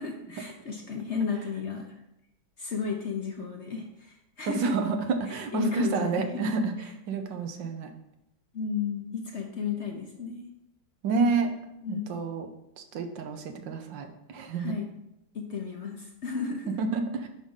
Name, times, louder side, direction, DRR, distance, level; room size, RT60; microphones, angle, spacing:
voice 1, 0.0-2.0 2.6-4.7 5.3-6.4 8.5-10.5 11.8-12.2 14.6-14.9 15.3-16.8, left 5 dB, 45° left, 2 dB, 1.0 m, -33 dB
voice 2, 4.5-6.7 7.1-7.9 11.0-11.5 11.9-12.5 12.9-14.7 16.8-17.3, right 4 dB, 80° right, 6 dB, 1.6 m, -29 dB
10.0 x 3.7 x 5.5 m, 0.84 s
omnidirectional pair, 2.0 m